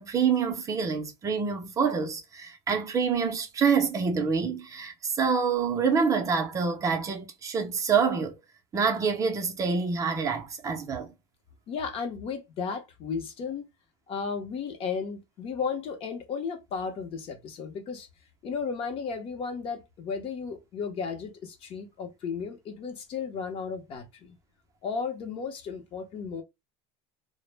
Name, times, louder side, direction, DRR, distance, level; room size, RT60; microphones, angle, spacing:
voice 1, 0.0-8.4 8.7-11.1, right 5 dB, 25° right, 0.5 m, -26 dB
voice 2, 11.7-13.7 14.1-18.1 18.4-24.3 24.8-26.4, left 5 dB, 40° left, 0.7 m, -34 dB
2.0 x 2.0 x 3.1 m
cardioid pair, 140°, 14 cm